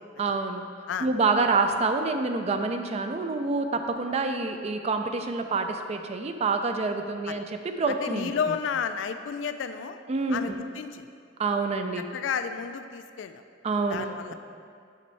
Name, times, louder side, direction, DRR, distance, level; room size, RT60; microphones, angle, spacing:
voice 1, 0.2-0.7 1.0-7.5 7.8-8.3 10.1-10.6 11.4-12.1 13.6-14.3, right 3 dB, 35° right, 6 dB, 0.3 m, -27 dB
voice 2, 7.9-10.0 10.3-11.1 12.1-13.4 13.9-14.3, left 6 dB, 80° left, 9 dB, 0.3 m, -32 dB
6.6 x 5.3 x 3.2 m, 2.2 s
head